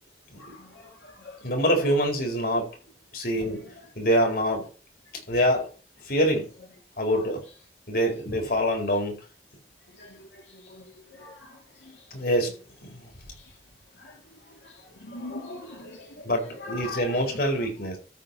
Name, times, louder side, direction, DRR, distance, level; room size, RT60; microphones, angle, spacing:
voice 1, 0.4-0.8 1.2-1.4 10.0-10.3 10.7-10.8 11.2-11.5 14.0-14.1 15.0-16.3 16.6-17.2, left 3 dB, 90° left, 3.2 m, -40 dB
voice 2, 1.4-2.7 3.1-3.6 3.9-4.7 5.3-5.7 6.1-6.5 7.0-7.4 7.9-9.2 12.1-12.5 12.8-13.1 16.2-18.0, equal, 55° left, 4.4 m, -25 dB
13.5 x 4.6 x 7.2 m
head